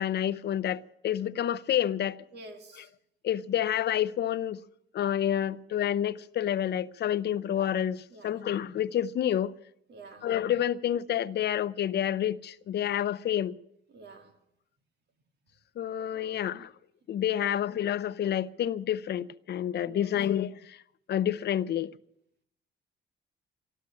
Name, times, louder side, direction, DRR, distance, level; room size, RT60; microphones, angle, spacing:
voice 1, 0.0-2.2 3.2-4.6 4.9-9.5 10.2-13.6 15.8-16.7 17.1-20.8 21.1-21.9, left 10 dB, 55° left, 0.6 m, -29 dB
voice 2, 2.3-2.9 8.1-8.4 9.9-10.3 13.9-14.4 16.1-16.7 17.3-17.7 19.8-20.2, right 2 dB, 55° right, 1.9 m, -49 dB
13.0 x 13.0 x 8.5 m
cardioid pair, 90°, 20 cm